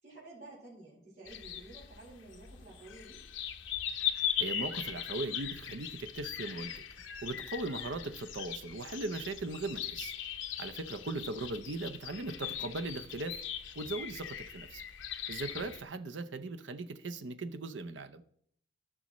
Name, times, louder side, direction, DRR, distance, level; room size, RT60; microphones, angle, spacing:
voice 1, 0.0-3.2 10.9-11.3 15.8-16.0, right 2 dB, 45° right, 4.4 m, -52 dB
sound 1, 1.3-15.8, left 9 dB, 90° left, 0.7 m, -39 dB
voice 2, 4.4-6.8 7.2-10.1 10.6-13.4 13.8-14.8 15.3-18.2, right 2 dB, 80° right, 0.7 m, -39 dB
14.5 x 6.2 x 3.1 m
head